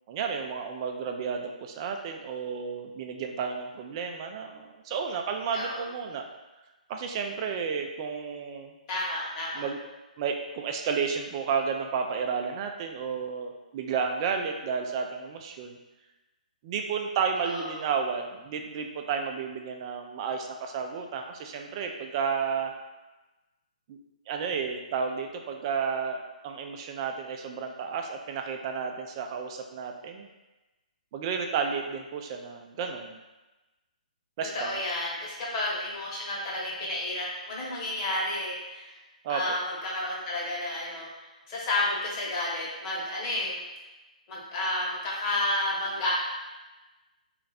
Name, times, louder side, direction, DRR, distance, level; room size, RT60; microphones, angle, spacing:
voice 1, 0.1-6.2 6.9-8.7 9.5-9.8 10.2-15.8 16.6-22.7 23.9-24.0 24.3-26.2 26.4-30.3 31.1-33.2 34.4-34.7 39.2-39.6, right 6 dB, 35° right, 4 dB, 0.4 m, -32 dB
voice 2, 8.9-9.6 17.4-17.7 34.5-38.9 39.3-43.6 44.3-46.1, left 1 dB, 35° left, -5 dB, 1.2 m, -31 dB
3.2 x 2.5 x 4.0 m, 1.1 s
figure-of-eight pair, 130°, 5 cm